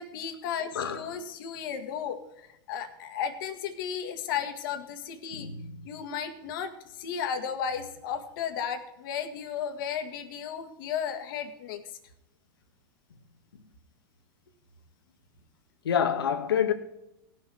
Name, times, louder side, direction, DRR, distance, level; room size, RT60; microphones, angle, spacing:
voice 1, 0.0-5.5 5.8-11.8, left 8 dB, 65° left, 1.7 m, -34 dB
voice 2, 0.7-1.1 5.4-5.9 15.8-16.7, left 8 dB, 85° left, 1.5 m, -27 dB
17.5 x 6.5 x 4.7 m
hypercardioid pair, 115°, 12 cm